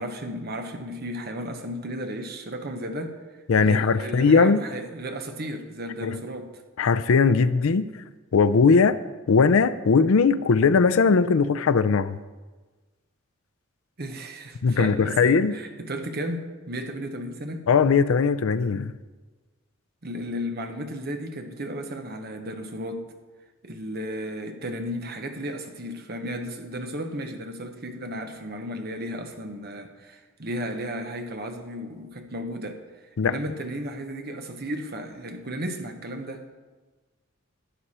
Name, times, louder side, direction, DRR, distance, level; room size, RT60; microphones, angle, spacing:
voice 1, 0.0-3.2 3.6-6.5 14.0-17.7 20.0-23.0 23.6-32.8 33.2-36.5, equal, 45° right, 1.0 m, -34 dB
voice 2, 3.5-4.6 6.0-6.2 6.8-7.9 8.3-9.0 9.3-12.2 14.6-15.5 17.7-18.9 33.2-33.4, left 5 dB, 75° left, 0.5 m, -19 dB
11.5 x 10.5 x 4.3 m
head